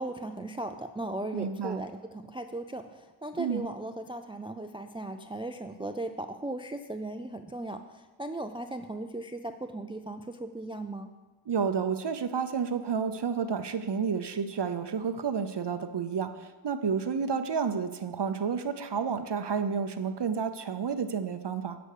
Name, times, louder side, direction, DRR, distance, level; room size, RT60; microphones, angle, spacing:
voice 1, 0.0-11.1, right 2 dB, 10° right, 7 dB, 0.4 m, -37 dB
voice 2, 1.3-1.8 3.4-3.6 11.5-21.8, right 6 dB, 55° right, 10 dB, 0.7 m, -30 dB
11.0 x 5.1 x 6.6 m, 1.2 s
wide cardioid pair, 45°, 49 cm